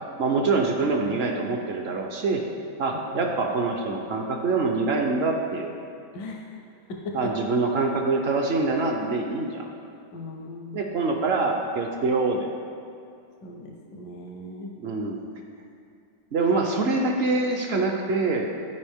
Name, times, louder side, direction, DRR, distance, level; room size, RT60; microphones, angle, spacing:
voice 1, 0.2-2.4 2.8-5.7 7.1-9.6 10.7-12.5 14.8-15.2 16.3-18.6, right 3 dB, 55° right, 2 dB, 0.7 m, -25 dB
voice 2, 6.9-7.3 10.1-10.8 13.4-14.7, left 2 dB, 85° left, 2 dB, 1.4 m, -37 dB
14.0 x 4.8 x 3.5 m, 2.4 s
omnidirectional pair, 1.8 m